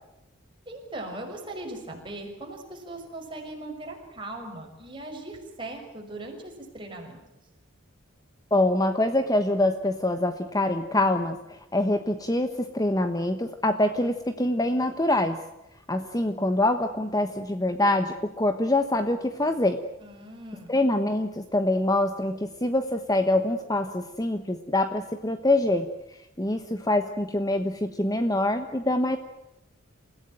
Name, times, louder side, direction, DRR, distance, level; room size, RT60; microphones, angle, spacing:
voice 1, 0.7-7.2 20.0-20.7, right 2 dB, 25° right, 1 dB, 6.1 m, -39 dB
voice 2, 8.5-15.4 15.9-19.8 20.7-25.9 26.4-29.2, left 1 dB, 20° left, 8 dB, 1.1 m, -25 dB
28.5 x 16.0 x 9.1 m, 0.92 s
head